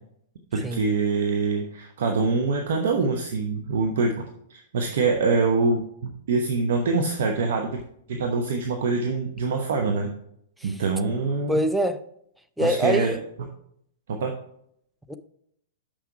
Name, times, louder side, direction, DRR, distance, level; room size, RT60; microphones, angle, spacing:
voice 1, 0.5-4.1 4.5-7.8 8.1-10.1 10.6-11.6 12.6-13.1 14.2-14.3, right 4 dB, 60° right, 0.9 m, -24 dB
voice 2, 11.5-12.0 12.6-13.2 15.1-15.2, equal, ahead, 0.5 m, -24 dB
6.6 x 5.8 x 4.7 m
figure-of-eight pair, 105°, 0 cm